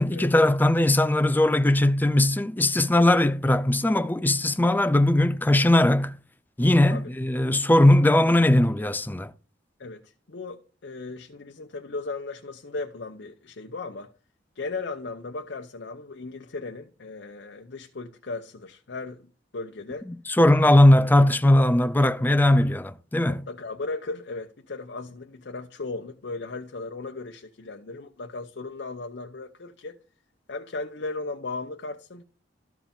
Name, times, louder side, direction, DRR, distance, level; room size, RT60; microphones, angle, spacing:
voice 1, 0.0-6.2 6.6-9.3 20.4-23.4, left 1 dB, 10° left, 0.4 m, -19 dB
voice 2, 9.8-14.1 14.5-20.1 20.6-20.8 23.3-30.0 30.5-32.2, left 3 dB, 65° left, 0.8 m, -36 dB
13.5 x 4.7 x 3.7 m
head